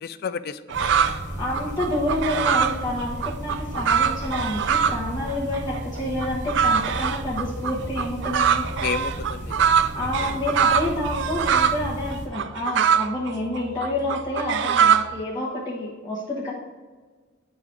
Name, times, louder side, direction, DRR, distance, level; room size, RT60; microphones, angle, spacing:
voice 1, 0.0-1.7 8.8-9.8 10.2-10.4, left 7 dB, 55° left, 14 dB, 0.3 m, -33 dB
sound 1, 0.7-12.3, right 1 dB, 40° right, 1.2 m, -34 dB
sound 2, 0.7-1.2 1.5-5.0 5.3-11.8 12.1-15.2, right 7 dB, 70° right, 0.4 m, -23 dB
voice 2, 1.4-8.7 9.9-16.5, left 1 dB, 20° left, -6 dB, 1.0 m, -28 dB
9.3 x 3.8 x 4.4 m, 1.4 s
head